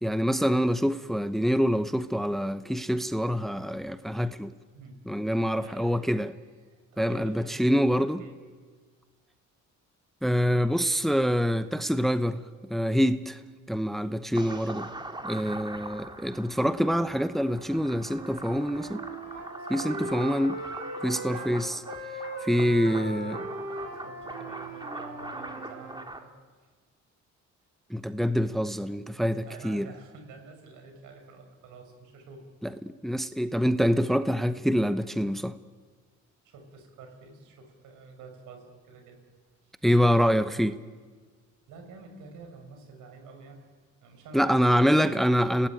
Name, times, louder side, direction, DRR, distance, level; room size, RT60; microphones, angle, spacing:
voice 1, 0.0-4.5 5.1-6.3 7.0-8.2 10.2-12.4 12.7-13.4 13.7-14.9 15.2-19.0 19.7-20.6 21.0-21.8 22.4-23.4 27.9-29.9 32.6-35.6 39.8-40.8 44.3-45.7, equal, ahead, 0.9 m, -25 dB
voice 2, 4.7-5.0 5.5-6.2 6.7-8.4 10.5-10.9 14.0-14.6 15.4-15.7 19.6-20.2 22.7-26.3 26.6-26.7 29.4-32.5 36.4-39.2 39.6-39.8 41.7-43.6 44.0-45.2, right 4 dB, 90° right, 5.5 m, -48 dB
sound 1, 14.3-26.2, right 2 dB, 15° right, 2.5 m, -42 dB
Wind instrument woodwind instrument, 18.0-21.5 21.9-26.1, right 2 dB, 60° right, 7.7 m, -39 dB
29.0 x 17.5 x 9.3 m
cardioid pair, 90°, 30 cm